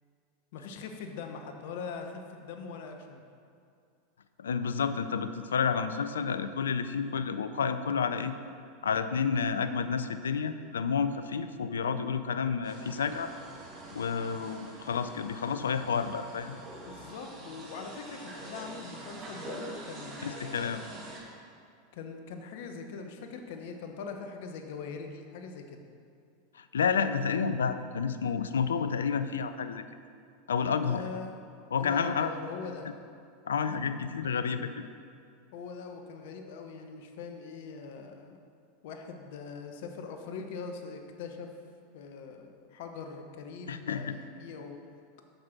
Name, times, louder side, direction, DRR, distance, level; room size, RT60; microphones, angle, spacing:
voice 1, 0.5-3.2 16.8-20.8 21.9-25.8 30.8-31.3 31.8-32.9 35.5-38.4 38.8-41.5 41.9-44.8, left 5 dB, 65° left, 5 dB, 1.1 m, -42 dB
voice 2, 4.4-8.4 8.8-13.3 13.9-16.6 20.2-20.8 26.5-29.8 30.5-31.0 31.7-32.3 33.5-34.8 43.7-44.2, left 6 dB, 85° left, 11 dB, 0.5 m, -30 dB
sound 1, 12.6-21.2, right 1 dB, 35° right, 2.4 m, -45 dB
7.8 x 6.8 x 5.9 m, 2.3 s
hypercardioid pair, 95°, 0 cm